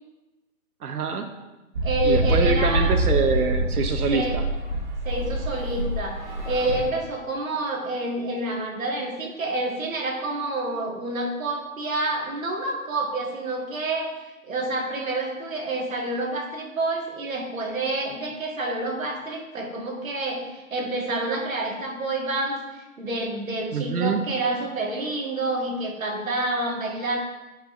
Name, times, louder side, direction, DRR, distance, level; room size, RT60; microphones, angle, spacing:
voice 1, 0.8-1.3 2.0-4.4 23.7-24.2, right 4 dB, 80° right, 7 dB, 0.9 m, -25 dB
sound 1, 1.7-6.9, right 1 dB, 35° right, 1.1 m, -25 dB
voice 2, 1.8-2.9 4.1-4.4 5.1-6.2 6.5-27.2, right 2 dB, 65° right, 0 dB, 1.7 m, -28 dB
8.8 x 5.8 x 2.6 m, 1.1 s
hypercardioid pair, 170°, 43 cm